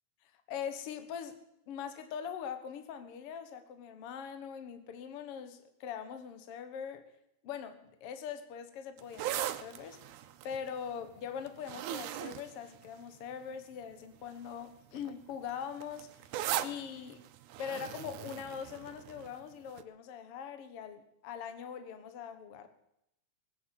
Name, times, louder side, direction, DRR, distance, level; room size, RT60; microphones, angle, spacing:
voice 1, 0.5-1.4 1.7-7.1 7.4-10.0 10.4-16.1 16.6-17.2 17.6-22.7, left 7 dB, 55° left, 9 dB, 2.0 m, -42 dB
sound 1, 9.0-13.4 14.2-14.5 14.7-19.3 19.8-19.9, right 12 dB, 90° right, 2.3 m, -39 dB
20.0 x 8.6 x 8.0 m, 0.81 s
omnidirectional pair, 3.4 m